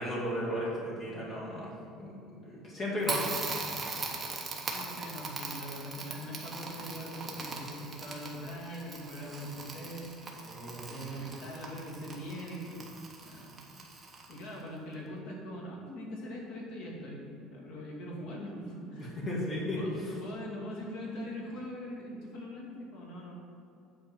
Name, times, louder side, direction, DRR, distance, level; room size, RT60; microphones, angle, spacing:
voice 1, 0.0-3.5 10.4-10.9 19.0-20.1, left 1 dB, 35° left, -5 dB, 2.3 m, -35 dB
Crackle, 3.0-14.6, right 3 dB, 15° right, 1.1 m, -40 dB
voice 2, 4.7-10.1 10.9-13.6 14.3-19.2 19.7-23.4, equal, 60° left, -3 dB, 2.3 m, -42 dB
8.9 x 4.4 x 7.3 m, 2.7 s
cardioid pair, 165°, 0 cm